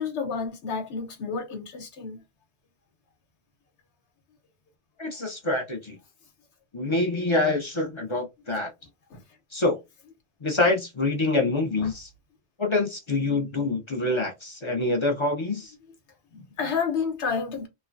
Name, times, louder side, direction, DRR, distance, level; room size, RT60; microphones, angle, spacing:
voice 1, 0.0-2.2 9.1-9.2 11.8-11.9 16.3-17.7, left 5 dB, 90° left, 1.2 m, -30 dB
voice 2, 5.0-6.0 6.7-8.7 9.5-9.8 10.4-12.1 12.6-15.7, left 2 dB, 35° left, 0.5 m, -26 dB
3.1 x 2.1 x 2.5 m
omnidirectional pair, 1.1 m